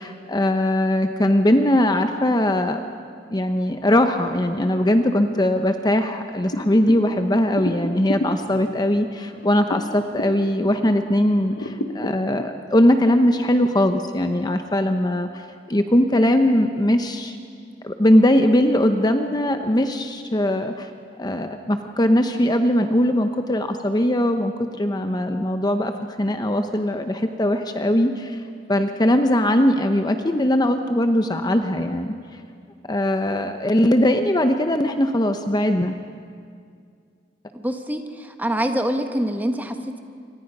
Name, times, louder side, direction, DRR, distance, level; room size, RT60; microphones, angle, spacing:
voice 1, 0.0-2.9 3.3-17.4 17.8-20.9 21.2-25.9 26.2-28.4 28.7-32.1 32.9-36.0, left 1 dB, 25° left, 7 dB, 0.8 m, -20 dB
sound 1, 6.5-11.1 11.5-13.3, left 1 dB, 90° left, 1.4 m, -32 dB
voice 2, 37.5-40.0, equal, 10° right, 6 dB, 1.3 m, -25 dB
27.0 x 25.0 x 5.4 m, 2.2 s
head